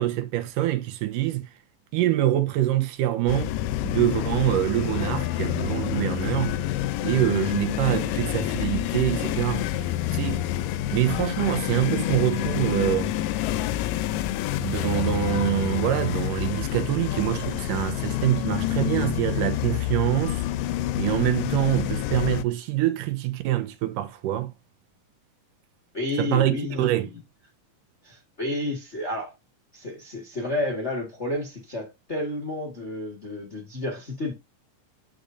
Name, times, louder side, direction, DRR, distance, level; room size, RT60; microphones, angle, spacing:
voice 1, 0.0-1.5 1.9-3.5 3.8-6.5 7.0-10.4 10.9-13.1 14.6-20.4 20.9-24.5 26.2-27.1, right 14 dB, 80° right, 2.3 m, -25 dB
sound 1, 3.3-22.4, left 13 dB, 85° left, 2.2 m, -28 dB
voice 2, 25.9-27.2 28.0-29.3 29.7-34.3, left 2 dB, 35° left, 1.1 m, -31 dB
8.6 x 5.1 x 2.6 m
omnidirectional pair, 3.9 m